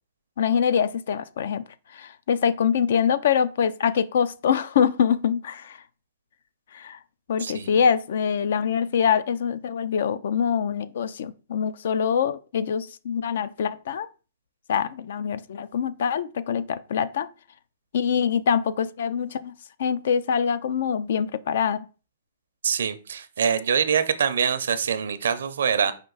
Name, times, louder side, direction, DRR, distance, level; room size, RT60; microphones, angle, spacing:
voice 1, 0.4-1.6 1.9-5.8 6.7-7.0 7.3-14.1 14.7-17.3 17.9-19.5 19.8-21.9, left 7 dB, 70° left, 0.4 m, -24 dB
voice 2, 7.4-7.8 22.6-25.9, right 7 dB, 80° right, 0.5 m, -24 dB
5.2 x 2.6 x 3.8 m
hypercardioid pair, 145°, 0 cm